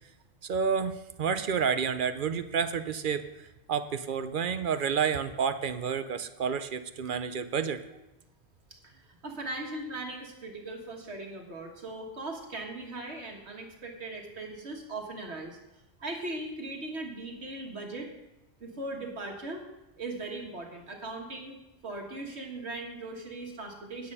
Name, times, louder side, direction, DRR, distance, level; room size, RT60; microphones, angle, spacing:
voice 1, 0.4-7.8, right 6 dB, 55° right, 11 dB, 0.7 m, -30 dB
voice 2, 8.8-15.6 16.0-18.1 18.6-19.6 20.0-24.1, right 2 dB, 80° right, 1 dB, 1.9 m, -39 dB
9.4 x 8.6 x 5.4 m, 0.96 s
omnidirectional pair, 1.1 m